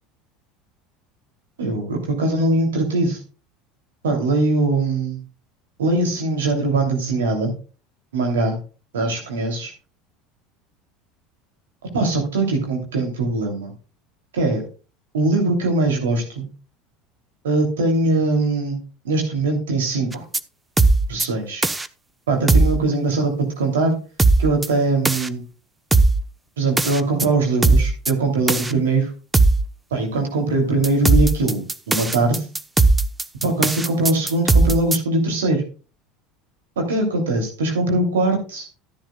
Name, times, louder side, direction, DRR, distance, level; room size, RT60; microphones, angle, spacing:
voice 1, 1.6-3.2 4.0-5.2 5.8-7.5 8.1-8.6 8.9-9.7 11.9-13.7 14.3-14.6 15.1-16.5 17.4-18.8 19.0-20.2 21.1-21.6 22.3-24.0 24.4-25.4 26.6-29.1 29.9-32.5 33.4-35.6 36.8-38.7, right 2 dB, 85° right, 1 dB, 3.0 m, -21 dB
sound 1, 20.1-20.4 20.8-21.3 21.6-21.9 22.5-22.8 24.2-24.7 25.0-25.3 25.9-26.2 26.8-27.3 27.6-28.1 28.5-28.7 29.3-29.6 30.8-35.0, right 3 dB, 15° right, 0.9 m, -17 dB
14.0 x 10.5 x 2.3 m, 0.35 s
hypercardioid pair, 80°, 0 cm